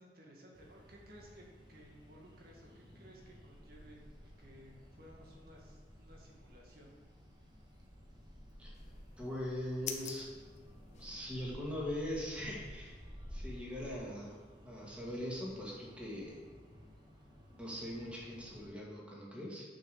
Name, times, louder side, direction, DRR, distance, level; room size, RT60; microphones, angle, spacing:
voice 1, 0.0-6.9, equal, 55° right, -2 dB, 1.9 m, -58 dB
sound 1, 0.5-18.7, equal, 25° right, 1.4 m, -54 dB
sound 2, 8.7-11.5, left 7 dB, 40° left, 0.8 m, -48 dB
voice 2, 9.2-10.3 11.0-13.0 13.3-16.4 17.5-19.6, left 1 dB, 5° right, -5 dB, 2.1 m, -41 dB
6.7 x 6.0 x 6.8 m, 1.4 s
head